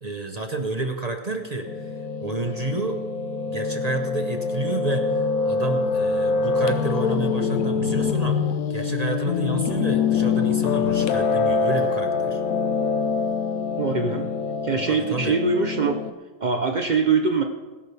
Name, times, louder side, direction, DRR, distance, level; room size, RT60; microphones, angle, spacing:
voice 1, 0.0-1.9 2.2-3.0 3.5-8.4 8.7-12.4 14.9-15.4, right 2 dB, 35° right, 5 dB, 0.6 m, -30 dB
Piano, 1.7-16.1, left 5 dB, 65° left, 1.1 m, -24 dB
voice 2, 13.8-14.3 14.6-16.0 16.4-17.4, right 4 dB, 75° right, 4 dB, 0.4 m, -22 dB
20.5 x 11.5 x 3.4 m, 1.3 s
omnidirectional pair, 1.8 m